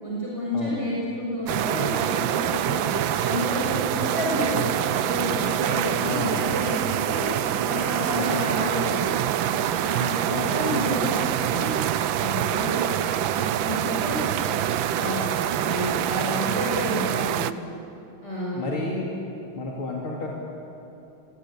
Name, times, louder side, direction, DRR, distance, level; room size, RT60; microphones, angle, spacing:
voice 1, 0.0-2.9 3.2-7.3 7.7-9.3 9.8-10.1 10.5-11.8 12.1-15.2 15.6-17.7 18.2-18.7, equal, 30° right, -6 dB, 6.1 m, -30 dB
sound 1, 1.5-17.5, right 11 dB, 75° right, 1.5 m, -25 dB
voice 2, 6.0-6.4 8.1-8.3 10.3-10.6 18.5-19.1 19.6-20.3, left 3 dB, 85° left, -3 dB, 3.5 m, -31 dB
28.0 x 23.0 x 8.6 m, 3.0 s
omnidirectional pair, 2.2 m